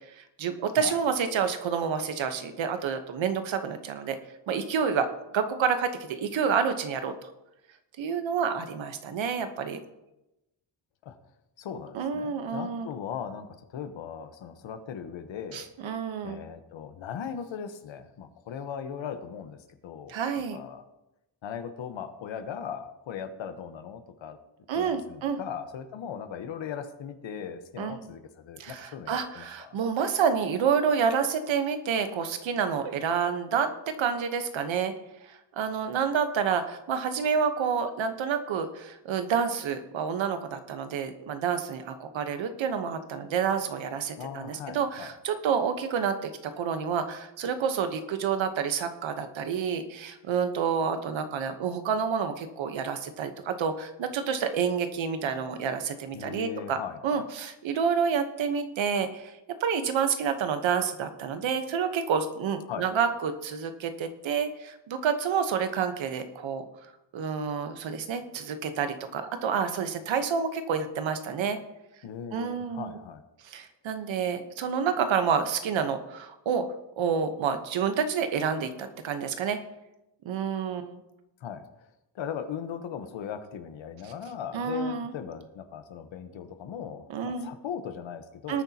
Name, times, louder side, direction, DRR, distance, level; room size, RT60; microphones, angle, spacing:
voice 1, 0.2-4.2 4.5-5.1 5.3-7.1 8.0-9.8 11.9-12.9 15.5-16.4 20.1-20.6 24.7-25.4 27.8-28.0 28.6-34.9 35.3-56.8 57.0-66.6 67.1-71.6 72.3-73.0 73.4-76.6 77.0-79.6 80.2-81.0 84.5-85.1 87.1-87.5 88.5-88.6, right 6 dB, 85° right, 8 dB, 1.2 m, -29 dB
voice 2, 11.6-15.6 16.2-20.2 20.5-20.8 21.4-24.4 24.7-29.8 44.2-45.1 56.1-57.2 62.7-62.9 72.0-73.2 81.4-81.6 82.1-88.6, left 8 dB, 85° left, 9 dB, 1.2 m, -38 dB
19.5 x 9.2 x 2.9 m, 0.93 s
cardioid pair, 60°, 45 cm